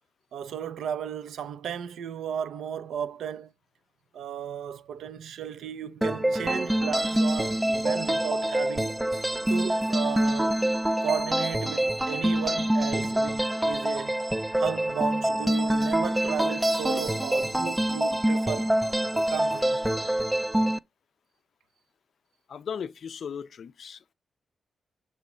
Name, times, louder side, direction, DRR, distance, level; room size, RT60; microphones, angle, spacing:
voice 1, 0.3-3.5 4.1-9.2 9.5-10.6 11.0-14.2 14.6-18.7 19.1-19.8, right 8 dB, 85° right, 0.5 m, -34 dB
sound 1, 6.0-20.8, right 1 dB, 10° right, 0.3 m, -26 dB
voice 2, 22.5-24.1, left 7 dB, 70° left, 0.4 m, -37 dB
6.0 x 3.1 x 5.5 m
cardioid pair, 65°, 0 cm